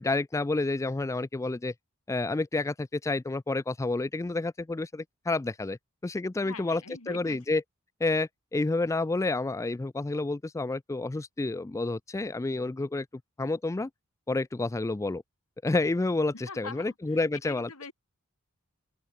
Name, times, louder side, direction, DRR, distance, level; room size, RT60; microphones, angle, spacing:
voice 1, 0.0-1.7 2.1-5.8 6.0-6.8 7.1-7.6 8.0-13.1 13.4-13.9 14.3-15.2 15.6-17.7, left 2 dB, 15° left, 0.3 m, -29 dB
voice 2, 6.4-7.4 16.5-17.9, left 4 dB, 85° left, 4.5 m, -43 dB
open air
head